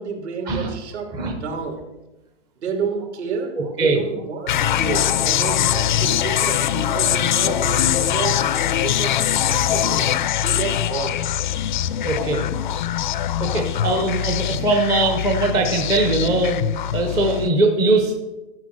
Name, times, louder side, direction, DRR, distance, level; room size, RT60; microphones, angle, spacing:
voice 1, 0.0-1.1 1.4-1.8 2.6-10.1 10.4-11.2, right 5 dB, 65° right, 3 dB, 3.0 m, -30 dB
Filter Dance, 4.5-17.5, left 11 dB, 40° left, 0.5 m, -22 dB
voice 2, 12.0-12.5 13.4-16.6 16.9-18.1, right 2 dB, 10° right, 2 dB, 0.6 m, -20 dB
13.5 x 6.9 x 6.3 m, 1.0 s
hypercardioid pair, 160°, 37 cm